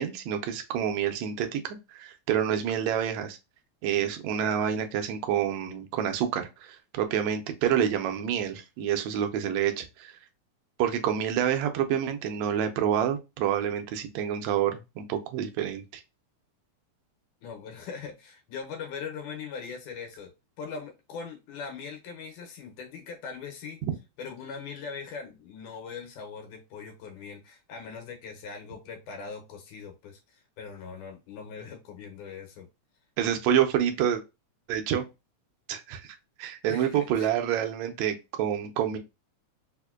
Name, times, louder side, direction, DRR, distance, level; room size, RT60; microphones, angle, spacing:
voice 1, 0.0-1.6 1.9-3.4 3.8-10.1 10.8-16.0 33.2-34.2 34.7-35.1 35.7-39.0, right 9 dB, 80° right, 6 dB, 1.7 m, -28 dB
voice 2, 17.4-20.3 20.6-23.8 24.2-32.7 36.7-37.3, left 5 dB, 90° left, 3 dB, 2.3 m, -41 dB
5.0 x 2.1 x 2.2 m, 0.25 s
omnidirectional pair, 3.4 m